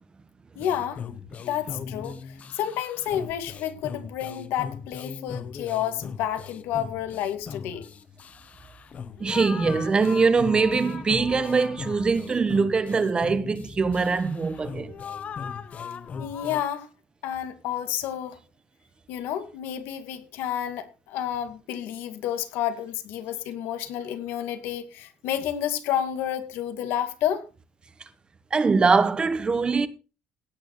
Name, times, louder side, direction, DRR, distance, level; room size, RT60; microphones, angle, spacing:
voice 1, 0.6-1.0 1.5-7.9 16.2-16.9 17.2-18.4 19.1-27.4, left 10 dB, 85° left, 2.2 m, -30 dB
sound 1, 0.6-16.6, left 6 dB, 40° left, 0.9 m, -39 dB
voice 2, 9.2-14.9 28.5-29.9, right 4 dB, 25° right, 1.1 m, -22 dB
17.0 x 9.1 x 3.1 m
cardioid pair, 125°, 4 cm